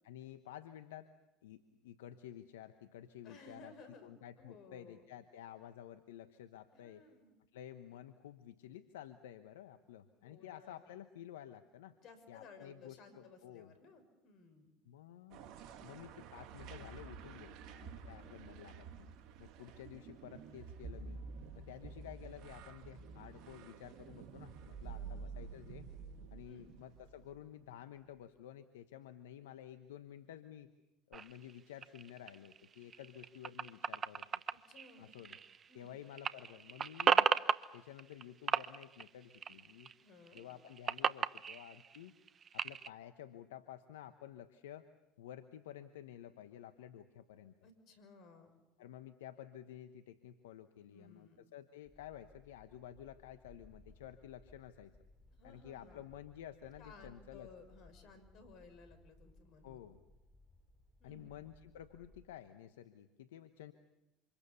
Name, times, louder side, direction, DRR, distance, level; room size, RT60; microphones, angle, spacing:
voice 1, 0.0-1.1 1.4-3.7 4.0-7.0 7.5-12.0 12.3-13.7 14.8-15.5 15.8-19.1 19.4-21.2 21.6-25.9 26.3-30.7 31.1-34.3 35.0-35.4 35.7-37.3 37.7-39.9 40.3-42.1 42.5-44.9 45.2-47.5 48.8-55.0 55.4-57.5 59.6-60.0 61.0-63.7, left 11 dB, 80° left, 10 dB, 1.1 m, -52 dB
voice 2, 3.2-4.1 4.4-5.0 6.7-7.4 10.2-10.9 12.0-14.7 18.0-18.4 24.9-25.5 26.4-26.7 34.7-35.1 35.7-35.9 40.0-40.5 47.6-48.5 50.9-51.4 55.4-56.0 56.8-59.8 61.0-61.4, left 4 dB, 55° left, 10 dB, 6.0 m, -58 dB
sound 1, 15.3-27.8, right 5 dB, 60° right, 2.3 m, -50 dB
sound 2, 31.1-35.9 36.1-38.2 38.5-39.9 40.3-42.9, right 7 dB, 35° right, 0.9 m, -35 dB
sound 3, 51.8-62.2, left 1 dB, 10° left, 7.8 m, -63 dB
28.5 x 26.5 x 7.0 m, 0.97 s
hypercardioid pair, 75°, 0 cm